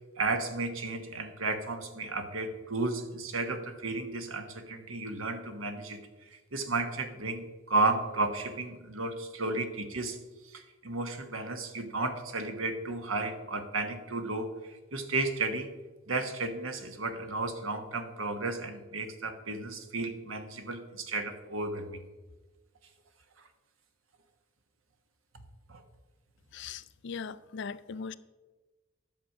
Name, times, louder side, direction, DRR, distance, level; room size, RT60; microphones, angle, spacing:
voice 1, 0.2-6.0 6.5-10.2 10.5-15.7 16.1-22.0 25.7-25.8, right 3 dB, 90° right, 1.3 m, -33 dB
voice 2, 26.5-28.1, left 5 dB, 60° left, 0.4 m, -39 dB
11.0 x 7.1 x 5.9 m
head